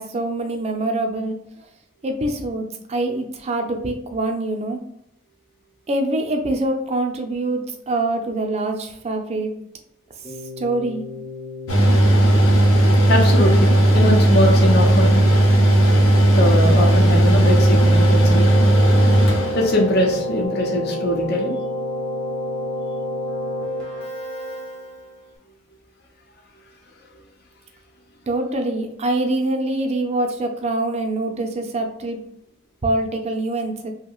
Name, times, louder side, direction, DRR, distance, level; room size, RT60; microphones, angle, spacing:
voice 1, 0.0-1.4 2.0-4.8 5.9-9.5 10.6-11.0 28.3-32.2 32.8-33.9, right 2 dB, 30° right, 4 dB, 0.4 m, -24 dB
Keyboard (musical), 10.2-25.3, left 1 dB, 5° left, 0.8 m, -30 dB
Mechanical fan, 11.7-20.1, right 1 dB, 85° left, 0.8 m, -15 dB
voice 2, 13.1-15.2 16.3-18.6 19.5-21.5, left 1 dB, 55° left, 0 dB, 0.7 m, -21 dB
2.9 x 2.8 x 2.3 m, 0.75 s
head